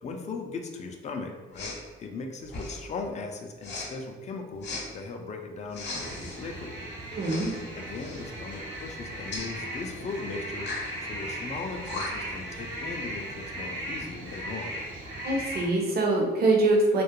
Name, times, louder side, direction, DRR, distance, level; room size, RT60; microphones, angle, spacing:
voice 1, 0.0-6.7 7.7-10.7 11.0-14.7, left 4 dB, 35° left, 3 dB, 0.4 m, -38 dB
Respiratory sounds, 1.5-1.8 2.5-2.9 3.6-3.9 4.6-4.8 5.7-6.4 7.2-7.6 7.9-8.2 9.3-9.5 10.6-10.9 11.6-11.7 11.9-12.3, left 3 dB, 60° left, 0.7 m, -37 dB
sound 1, 6.0-15.7, right 1 dB, 70° right, 0.9 m, -37 dB
voice 2, 7.1-7.5 15.2-17.0, right 2 dB, 50° right, 0 dB, 0.6 m, -24 dB
2.3 x 2.1 x 2.9 m, 1.3 s
cardioid pair, 90°, 20 cm